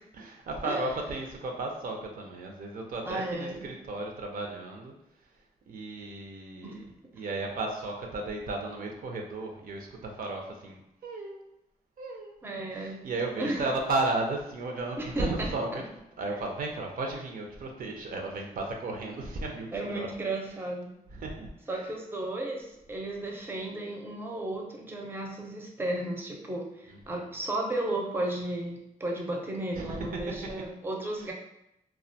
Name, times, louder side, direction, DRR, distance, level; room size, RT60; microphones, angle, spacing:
voice 1, 0.1-4.9 5.7-11.5 12.0-12.4 12.8-15.8 16.2-20.1 21.1-21.5 26.9-27.3 29.7-30.3 31.2-31.3, right 2 dB, 70° right, 1 dB, 0.4 m, -34 dB
voice 2, 3.0-3.7 6.6-6.9 12.4-13.1 13.4-13.7 15.0-15.5 19.7-20.9 21.7-31.3, right 1 dB, 15° right, 0 dB, 0.4 m, -34 dB
2.3 x 2.1 x 2.6 m, 0.84 s
cardioid pair, 90°, 15 cm